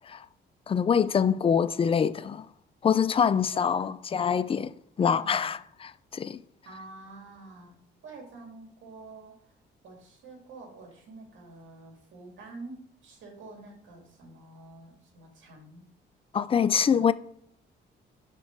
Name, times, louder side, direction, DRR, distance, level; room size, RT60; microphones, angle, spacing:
voice 1, 0.7-2.5 2.8-6.4 16.3-17.1, left 7 dB, 30° left, 0.3 m, -25 dB
voice 2, 3.5-4.0 5.2-5.5 6.6-7.7 8.0-9.5 9.8-15.8 16.7-17.1, right 3 dB, 70° right, 2.4 m, -48 dB
5.8 x 4.5 x 4.6 m
cardioid pair, 90°, 20 cm